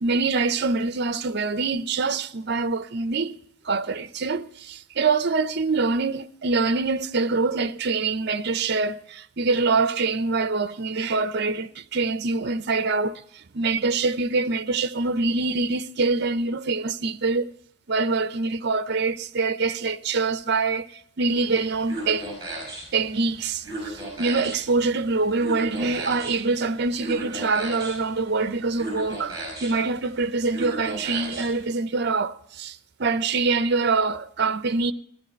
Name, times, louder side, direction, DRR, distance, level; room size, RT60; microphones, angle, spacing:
voice 1, 0.0-3.4 3.6-17.5 17.9-22.3 22.9-34.9, right 4 dB, 50° right, 0.6 m, -25 dB
sound 1, 21.4-31.7, right 1 dB, 15° right, 4.8 m, -37 dB
15.0 x 11.5 x 4.4 m
head